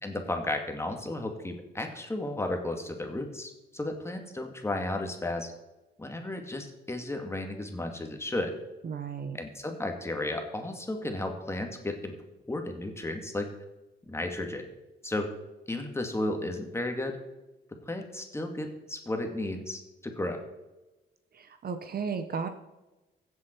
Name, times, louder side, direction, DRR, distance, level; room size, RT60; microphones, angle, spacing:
voice 1, 0.0-5.5 6.0-8.6 9.3-12.2 12.5-13.5 14.1-14.7 15.0-15.3 15.7-17.2 17.9-20.4, left 1 dB, 15° left, 4 dB, 2.1 m, -33 dB
voice 2, 8.8-9.4 21.6-22.5, right 6 dB, 50° right, 8 dB, 1.1 m, -33 dB
15.5 x 7.6 x 4.5 m, 1.0 s
cardioid pair, 90°, 20 cm